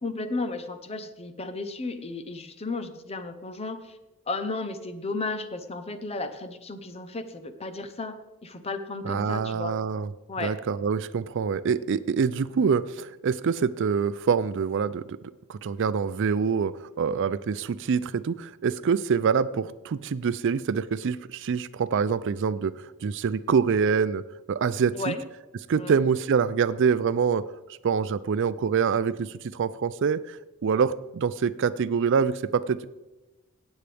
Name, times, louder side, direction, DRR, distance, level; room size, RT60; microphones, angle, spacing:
voice 1, 0.0-4.0 4.3-9.8 10.3-10.5 24.9-25.2 25.8-26.0, left 3 dB, 30° left, 10 dB, 0.8 m, -34 dB
voice 2, 9.0-10.1 10.4-15.2 15.5-24.2 24.5-25.1 25.7-27.4 27.8-32.9, right 6 dB, 55° right, 16 dB, 0.4 m, -25 dB
17.5 x 8.2 x 3.5 m, 1.0 s
head